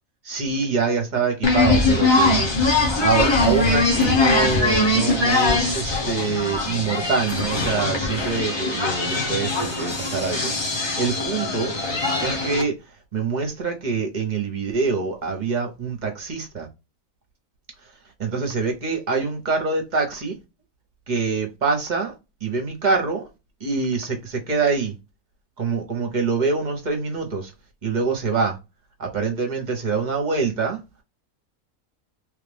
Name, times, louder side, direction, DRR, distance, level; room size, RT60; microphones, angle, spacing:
voice 1, 0.2-2.4 2.7-12.8 13.1-16.7 18.2-20.3 21.1-22.1 22.4-23.3 23.6-24.9 25.6-27.5 27.8-28.6 29.0-30.8, right 4 dB, 35° right, 1.0 m, -25 dB
sound 1, 1.4-12.6, left 3 dB, 25° left, 0.7 m, -21 dB
3.3 x 2.5 x 3.3 m
omnidirectional pair, 1.4 m